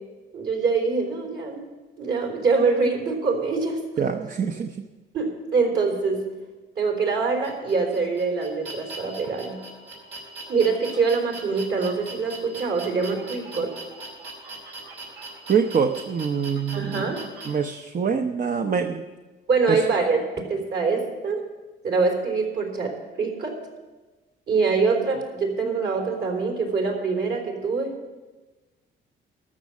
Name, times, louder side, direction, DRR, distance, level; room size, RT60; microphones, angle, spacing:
voice 1, 0.3-1.6 2.0-3.8 4.1-4.2 5.1-6.2 6.8-9.6 10.5-13.7 16.7-17.2 19.5-20.2 20.5-21.4 21.8-23.5 24.5-27.9, right 4 dB, 60° right, 1 dB, 3.5 m, -24 dB
voice 2, 4.0-4.7 15.5-17.1 17.5-19.0, right 6 dB, 40° right, 6 dB, 0.7 m, -25 dB
sound 1, 7.4-17.5, right 3 dB, 80° right, 4.3 m, -40 dB
13.5 x 6.4 x 8.3 m, 1.2 s
cardioid pair, 90°, 20 cm